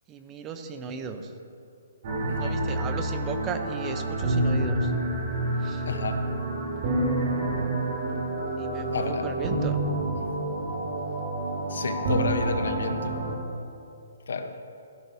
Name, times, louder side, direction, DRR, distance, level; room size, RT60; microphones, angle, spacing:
voice 1, 0.1-1.3 2.4-4.9 5.6-5.9 8.6-9.8, right 5 dB, 20° right, 7 dB, 0.7 m, -36 dB
sound 1, 2.0-13.3, right 2 dB, 45° right, 2.6 m, -28 dB
voice 2, 2.3-2.6 5.9-6.3 8.9-9.3 11.7-13.2 14.3-14.5, left 4 dB, 75° left, 8 dB, 0.9 m, -31 dB
15.0 x 12.5 x 2.7 m, 2.5 s
hypercardioid pair, 150°, 0 cm